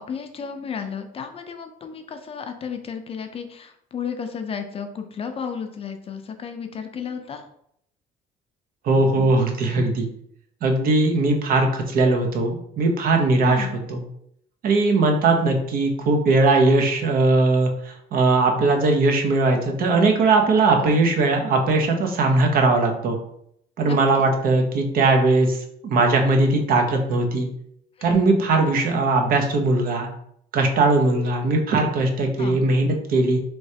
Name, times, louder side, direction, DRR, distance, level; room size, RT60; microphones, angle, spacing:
voice 1, 0.0-7.5 13.4-13.8 20.5-21.0 23.8-24.3 28.0-28.4 32.4-32.7, left 6 dB, 35° left, 6 dB, 0.4 m, -33 dB
voice 2, 8.8-10.1 10.6-14.0 14.6-23.2 23.8-25.6 25.8-27.5 28.0-30.1 30.5-33.4, right 3 dB, 60° right, 3 dB, 0.7 m, -19 dB
3.2 x 3.0 x 2.7 m, 0.72 s
cardioid pair, 110°, 17 cm